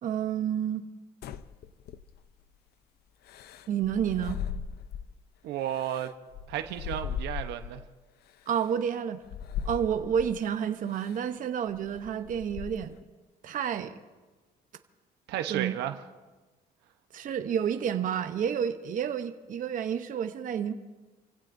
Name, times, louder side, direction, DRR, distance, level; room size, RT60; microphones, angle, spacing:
voice 1, 0.0-0.8 3.7-4.4 8.5-9.2 9.6-13.0 13.4-14.0 15.5-15.7 17.1-20.7, right 8 dB, 50° right, 0.9 m, -30 dB
sound 1, 1.2-2.4 3.3-5.2 5.6-7.9 8.5-8.6 9.2-10.4 10.9-11.3 11.7-13.0, left 8 dB, 70° left, 0.7 m, -38 dB
voice 2, 5.4-6.1 6.5-7.8 15.3-16.0, right 11 dB, 85° right, 1.0 m, -33 dB
29.0 x 16.5 x 2.7 m
cardioid pair, 110°, 17 cm